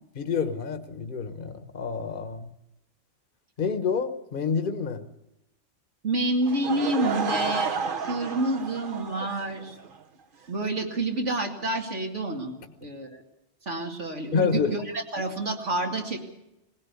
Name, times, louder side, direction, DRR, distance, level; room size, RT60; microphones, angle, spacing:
voice 1, 0.1-2.5 3.6-5.0 14.3-14.7, left 6 dB, 45° left, 8 dB, 1.3 m, -28 dB
voice 2, 6.0-7.7 8.1-9.7 10.5-12.5 12.8-13.2 13.7-14.8 15.1-16.2, right 2 dB, 75° right, 2 dB, 2.9 m, -28 dB
Laughter / Crowd, 6.4-10.0, right 5 dB, 50° right, 1.1 m, -31 dB
20.0 x 17.0 x 8.3 m, 0.88 s
omnidirectional pair, 1.2 m